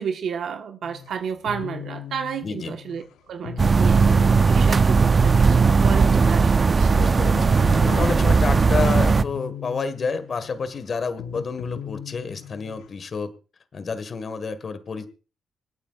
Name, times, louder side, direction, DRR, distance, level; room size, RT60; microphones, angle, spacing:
voice 1, 0.0-7.0, right 7 dB, 70° right, 1.3 m, -32 dB
sound 1, 0.8-13.0, left 9 dB, 85° left, 0.6 m, -39 dB
voice 2, 2.4-2.8 6.9-7.6 7.8-13.3 13.7-15.1, left 5 dB, 50° left, 1.6 m, -29 dB
sound 2, 3.6-9.2, right 4 dB, 40° right, 0.6 m, -17 dB
26.0 x 8.8 x 2.4 m
supercardioid pair, 65°, 0 cm